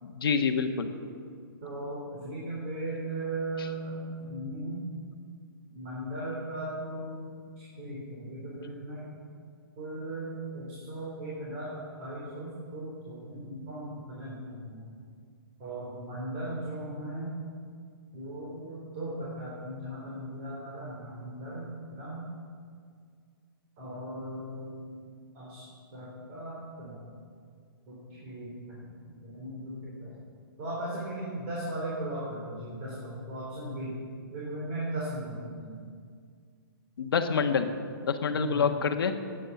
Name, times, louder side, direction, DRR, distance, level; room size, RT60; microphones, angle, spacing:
voice 1, 0.0-0.9 3.6-3.7 37.0-37.7 38.0-39.1, left 6 dB, 70° left, 6 dB, 1.4 m, -27 dB
voice 2, 1.6-4.9 5.7-7.3 7.6-9.1 9.8-14.8 15.6-17.3 18.1-22.3 23.8-25.0 25.3-25.6 25.9-27.0 27.9-30.1 30.6-34.0 34.3-35.8 38.3-38.6, right 1 dB, 30° right, -6 dB, 4.2 m, -37 dB
17.0 x 9.5 x 7.1 m, 2.1 s
hypercardioid pair, 165°, 12 cm